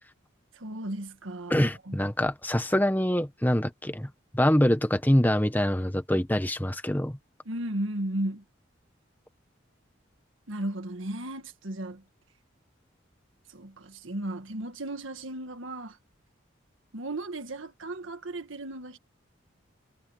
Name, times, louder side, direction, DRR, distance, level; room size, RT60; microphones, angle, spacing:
voice 1, 0.5-2.0 7.5-8.4 10.5-12.0 13.5-16.0 16.9-19.0, right 1 dB, 85° right, 1.6 m, -35 dB
voice 2, 1.5-4.1 4.3-7.2, equal, 10° left, 1.2 m, -25 dB
head